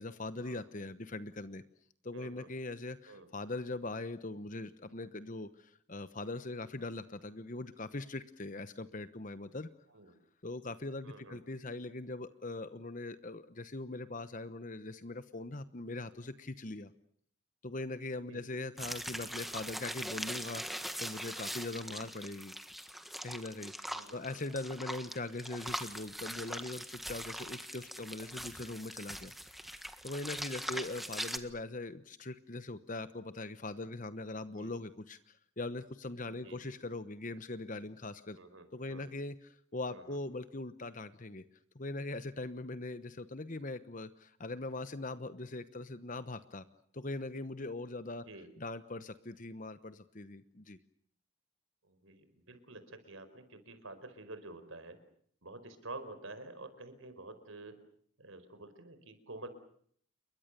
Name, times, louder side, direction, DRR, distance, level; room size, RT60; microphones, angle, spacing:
voice 1, 0.0-1.6 2.0-9.7 10.4-16.9 17.6-22.5 23.2-29.3 29.6-38.4 38.7-41.4 41.7-46.6 46.9-48.2 48.6-50.8, left 2 dB, 40° left, 12 dB, 1.0 m, -41 dB
voice 2, 2.1-2.5 3.1-3.3 9.9-10.1 11.0-11.4 18.3-18.4 21.8-22.1 23.9-24.4 30.7-30.9 34.4-34.7 36.2-36.7 38.4-39.1 39.9-40.2 48.3-48.5 51.8-55.0 55.4-57.7 58.2-59.5, right 2 dB, 70° right, 10 dB, 4.9 m, -49 dB
sound 1, 18.8-31.4, equal, ahead, 1.5 m, -42 dB
29.0 x 23.5 x 6.8 m, 0.62 s
head